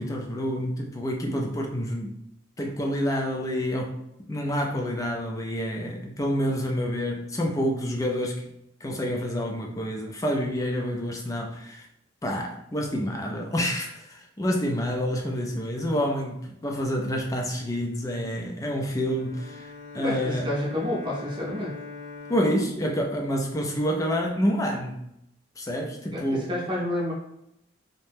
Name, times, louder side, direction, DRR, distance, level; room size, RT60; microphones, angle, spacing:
voice 1, 0.0-2.2 2.6-8.5 8.8-11.8 12.2-20.5 22.3-25.0 25.6-26.5, equal, 15° left, 1 dB, 0.4 m, -28 dB
Bowed string instrument, 19.0-24.2, left 4 dB, 65° left, 0.6 m, -43 dB
voice 2, 20.0-21.7 26.1-27.1, left 1 dB, 25° right, -5 dB, 0.6 m, -29 dB
2.7 x 2.1 x 3.3 m, 0.80 s
head